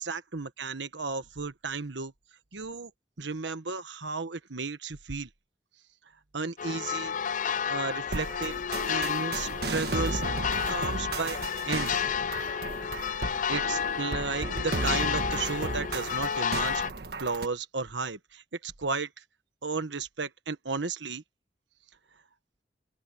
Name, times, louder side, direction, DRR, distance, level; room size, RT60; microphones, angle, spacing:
voice 1, 0.0-2.1 2.5-2.9 3.2-5.3 6.3-7.1 7.6-8.6 8.9-10.2 10.7-11.4 11.7-12.0 13.2-16.8 17.2-19.1 19.6-21.2, right 4 dB, 80° right, 1.4 m, -34 dB
sound 1, 6.6-16.9, left 7 dB, 45° left, 0.4 m, -31 dB
sound 2, 8.1-17.5, right 2 dB, 65° right, 1.4 m, -35 dB
open air
head